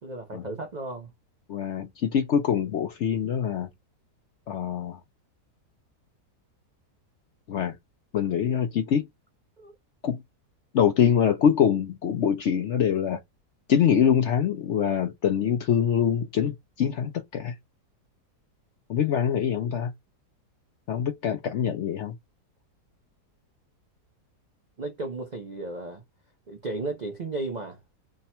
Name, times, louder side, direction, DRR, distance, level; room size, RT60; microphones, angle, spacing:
voice 1, 0.0-1.1 9.6-9.7 24.8-26.0 26.5-27.8, right 2 dB, 85° right, 0.3 m, -34 dB
voice 2, 1.5-3.7 4.5-5.0 7.5-7.7 8.1-9.1 10.0-10.2 10.7-13.2 13.7-17.5 18.9-19.9 20.9-22.1, left 8 dB, 65° left, 0.7 m, -24 dB
3.3 x 2.2 x 4.2 m
omnidirectional pair, 1.7 m